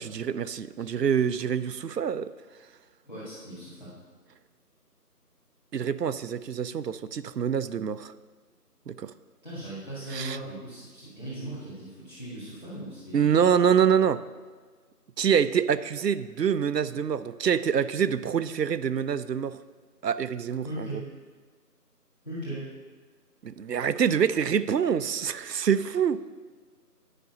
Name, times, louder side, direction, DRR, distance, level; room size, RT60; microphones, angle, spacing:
voice 1, 0.0-2.3 5.7-8.1 8.9-9.1 10.1-10.4 13.1-14.2 15.2-19.6 20.0-20.9 23.4-26.2, right 7 dB, 90° right, 15 dB, 0.6 m, -25 dB
voice 2, 3.1-3.9 9.4-13.4 20.6-21.1 22.2-22.7, right 1 dB, 30° left, -11 dB, 1.8 m, -38 dB
10.0 x 5.0 x 5.4 m, 1.5 s
figure-of-eight pair, 175°, 48 cm